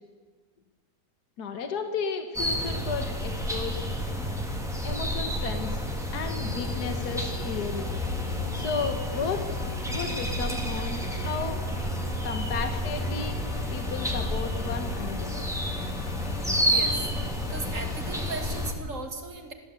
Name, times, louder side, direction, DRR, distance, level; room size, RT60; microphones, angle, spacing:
voice 1, 1.4-3.8 4.8-5.8 6.1-7.9 8.5-9.4 9.9-11.6 12.1-13.4 13.7-15.3, left 5 dB, 65° left, 6 dB, 1.9 m, -33 dB
sound 1, 2.3-18.7, equal, ahead, 2.8 m, -30 dB
sound 2, 6.4-18.7, left 7 dB, 85° left, 1.8 m, -42 dB
voice 2, 16.7-17.1 17.4-19.5, right 3 dB, 45° right, 5 dB, 2.7 m, -37 dB
22.5 x 15.5 x 8.3 m, 1.4 s
omnidirectional pair, 1.8 m